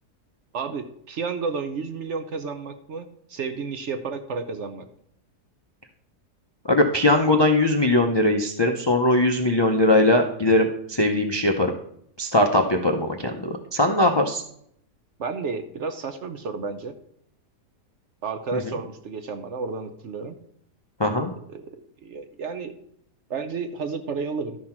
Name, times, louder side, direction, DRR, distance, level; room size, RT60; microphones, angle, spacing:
voice 1, 0.5-4.9 15.2-16.9 18.2-20.4 21.5-21.7 22.0-22.7 23.3-24.6, right 4 dB, 55° right, 8 dB, 0.9 m, -31 dB
voice 2, 6.7-11.7 12.2-14.4 18.5-18.7 21.0-21.3, left 1 dB, 40° left, 4 dB, 0.3 m, -20 dB
12.0 x 5.7 x 4.5 m, 0.69 s
omnidirectional pair, 1.7 m